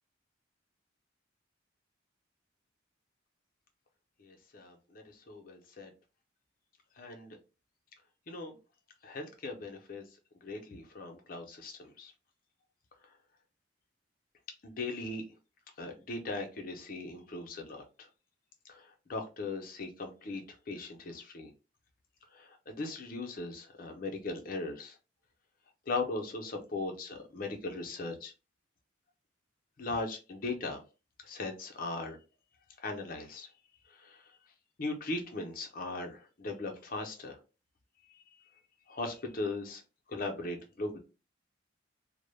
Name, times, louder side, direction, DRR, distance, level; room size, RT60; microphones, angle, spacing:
voice 1, 4.2-5.9 7.0-7.4 8.3-8.5 9.0-10.0 10.4-12.1 14.6-15.2 15.8-17.8 18.7-21.5 22.3-25.0 25.9-28.3 29.8-30.8 31.2-32.2 32.8-33.5 33.9-34.3 34.8-37.4 38.1-38.2 38.9-39.8 40.1-41.0, left 3 dB, 45° left, 3 dB, 0.5 m, -39 dB
2.1 x 2.0 x 3.1 m, 0.31 s
head